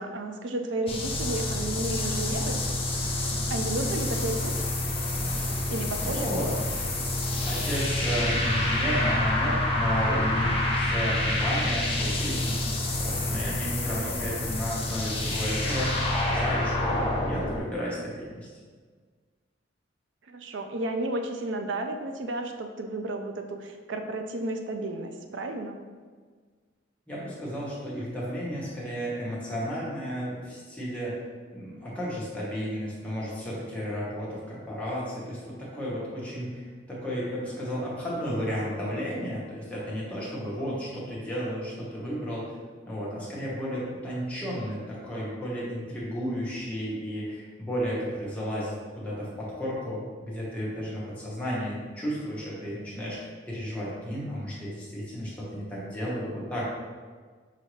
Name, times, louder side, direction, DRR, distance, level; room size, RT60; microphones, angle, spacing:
voice 1, 0.0-2.6 3.5-4.6 5.7-6.3 20.3-25.8, right 2 dB, 75° right, 5 dB, 0.4 m, -32 dB
sound 1, 0.9-17.6, left 1 dB, 30° left, 0.5 m, -28 dB
voice 2, 6.0-6.6 7.4-18.5 27.1-31.2 31.5-42.5 42.9-53.2 53.4-56.7, equal, 5° left, -7 dB, 1.1 m, -33 dB
5.7 x 2.7 x 3.1 m, 1.5 s
head